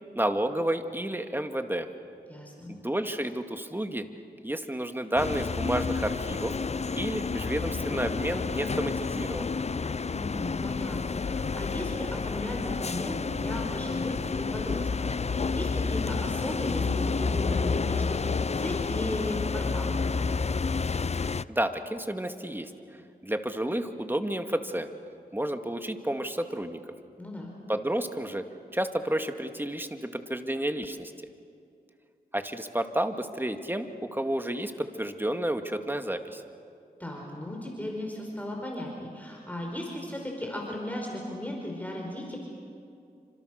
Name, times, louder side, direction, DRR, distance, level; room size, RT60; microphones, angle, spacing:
voice 1, 0.2-1.9 2.7-4.1 4.4-6.5 7.0-9.5 21.5-22.7 23.2-24.9 25.3-26.8 27.7-28.4 28.7-31.1 32.3-36.4, right 1 dB, 10° right, 6 dB, 2.1 m, -31 dB
voice 2, 2.3-2.7 10.0-20.0 27.2-27.5 37.0-42.4, left 1 dB, 10° left, -1 dB, 5.3 m, -36 dB
sound 1, 5.2-21.4, left 4 dB, 40° left, 0.5 m, -30 dB
29.0 x 26.5 x 6.6 m, 2.5 s
cardioid pair, 45°, 17 cm